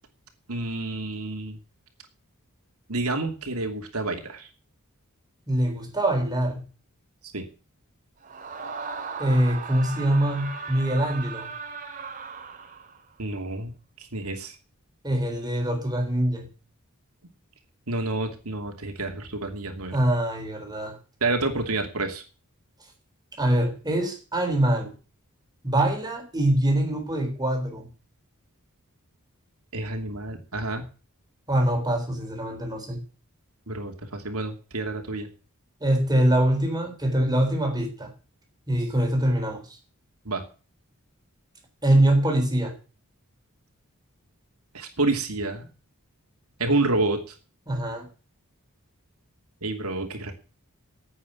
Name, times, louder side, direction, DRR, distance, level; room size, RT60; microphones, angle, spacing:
voice 1, 0.5-1.6 2.9-4.5 7.3-7.5 13.2-13.7 14.1-14.5 17.9-20.0 21.2-22.2 29.7-30.9 33.7-35.3 40.2-40.4 44.7-45.7 46.6-47.2 49.6-50.3, right 2 dB, 75° right, 2.8 m, -28 dB
voice 2, 5.5-6.6 9.2-11.5 15.0-16.5 19.9-21.0 23.4-24.9 25.6-27.9 31.5-33.0 35.8-38.1 38.7-39.6 41.8-42.7 47.7-48.1, right 1 dB, 20° right, 3.8 m, -24 dB
Screaming, 8.2-13.1, right 5 dB, 35° right, 2.4 m, -37 dB
9.9 x 8.6 x 9.6 m
head